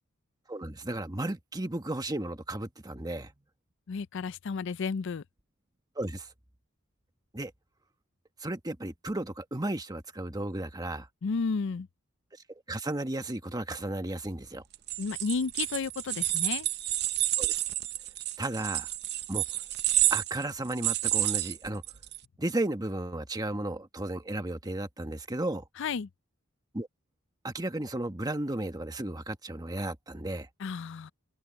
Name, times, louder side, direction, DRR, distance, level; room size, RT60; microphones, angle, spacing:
voice 1, 0.5-3.3 6.0-6.3 7.3-7.5 8.4-11.1 12.7-14.6 17.4-17.6 18.4-18.9 19.3-19.4 20.1-21.8 22.4-25.6 26.7-26.9 27.4-30.5, right 1 dB, 20° right, 1.2 m, -34 dB
voice 2, 3.9-5.2 11.2-11.9 15.0-16.7 25.8-26.1 30.6-31.1, left 5 dB, 60° left, 0.4 m, -32 dB
sound 1, 14.7-22.2, right 14 dB, 55° right, 0.7 m, -30 dB
open air
head